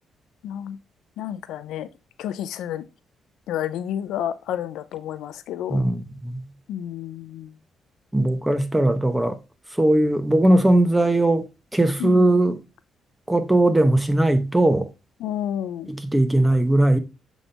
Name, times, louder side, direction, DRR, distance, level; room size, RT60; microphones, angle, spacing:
voice 1, 0.4-0.8 1.2-1.9 2.2-2.9 3.5-5.8 6.7-7.5 12.0-12.4 15.2-15.9, left 10 dB, 85° left, 0.5 m, -30 dB
voice 2, 5.7-6.5 8.1-9.4 9.7-11.5 11.7-12.6 13.3-14.9 15.9-17.0, right 1 dB, 10° right, 0.9 m, -19 dB
7.2 x 4.1 x 3.3 m
cardioid pair, 90°, 0 cm